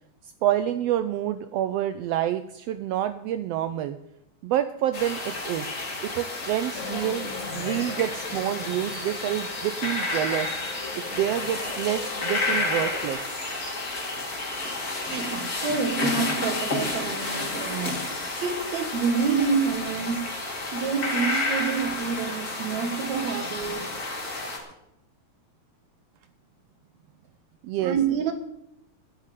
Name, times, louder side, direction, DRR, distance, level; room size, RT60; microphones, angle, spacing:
voice 1, 0.4-4.0 4.4-5.7 6.0-10.5 11.0-13.3 27.6-28.0, right 12 dB, 90° right, 11 dB, 1.4 m, -28 dB
sound 1, 4.9-24.6, left 2 dB, 30° left, 2.8 m, -31 dB
sound 2, 6.7-13.1, left 4 dB, 75° left, 0.7 m, -39 dB
voice 2, 15.1-18.1 18.4-20.2 20.7-24.0 27.8-28.3, right 6 dB, 65° right, 8 dB, 2.7 m, -28 dB
9.9 x 8.5 x 9.2 m, 0.83 s
omnidirectional pair, 3.5 m